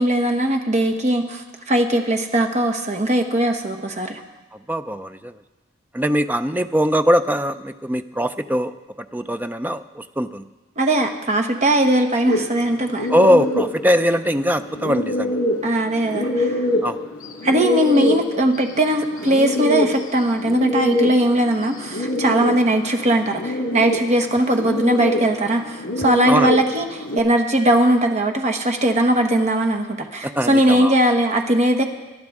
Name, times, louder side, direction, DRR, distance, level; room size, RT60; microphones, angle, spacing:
voice 1, 0.0-4.2 10.8-13.1 15.6-16.7 17.4-31.9, right 1 dB, 35° right, 4 dB, 1.1 m, -19 dB
voice 2, 4.7-5.3 5.9-10.4 13.1-15.4 16.8-17.0 26.3-26.5 30.2-31.0, equal, 10° right, 10 dB, 0.4 m, -21 dB
sound 1, 12.2-27.2, left 1 dB, 85° left, 1.9 m, -25 dB
21.0 x 11.5 x 3.6 m, 1.1 s
head